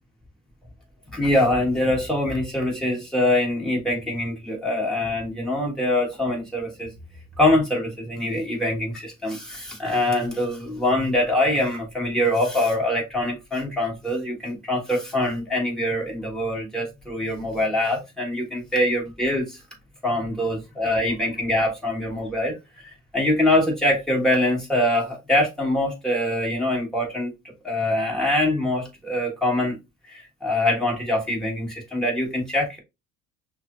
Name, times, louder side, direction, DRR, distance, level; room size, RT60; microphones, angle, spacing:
voice 1, 1.1-6.9 7.4-19.6 20.0-22.6 23.1-27.3 27.6-29.8 30.1-32.8, left 1 dB, ahead, 1.4 m, -24 dB
5.9 x 2.0 x 2.5 m
cardioid pair, 130°, 31 cm